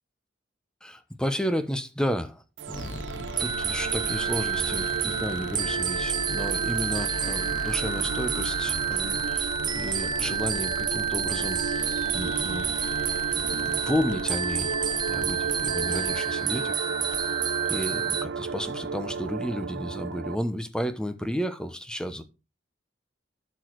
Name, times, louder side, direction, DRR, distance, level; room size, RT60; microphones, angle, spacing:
voice 1, 0.8-9.5 9.7-12.8 13.3-14.7 15.1-16.8 17.7-22.2, equal, 5° left, 0.9 m, -32 dB
sound 1, 2.6-20.4, right 5 dB, 80° right, 0.5 m, -34 dB
sound 2, 2.7-19.7, left 2 dB, 70° left, 0.8 m, -41 dB
sound 3, 3.4-18.3, right 7 dB, 25° right, 0.5 m, -29 dB
12.0 x 4.6 x 4.6 m
head